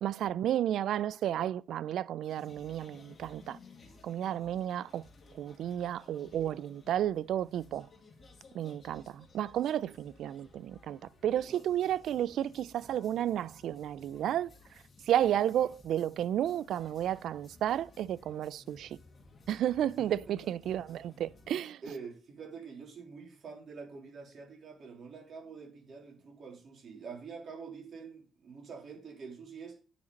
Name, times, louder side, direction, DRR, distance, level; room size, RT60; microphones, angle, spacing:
voice 1, 0.0-3.6 4.0-5.0 5.3-7.9 8.5-14.5 15.1-19.0 19.5-21.8, right 11 dB, 75° right, 0.3 m, -32 dB
sound 1, 2.2-21.5, left 3 dB, 40° left, 2.1 m, -57 dB
voice 2, 21.8-29.8, right 5 dB, 55° right, 3.3 m, -46 dB
9.6 x 5.2 x 4.0 m
cardioid pair, 90°, 0 cm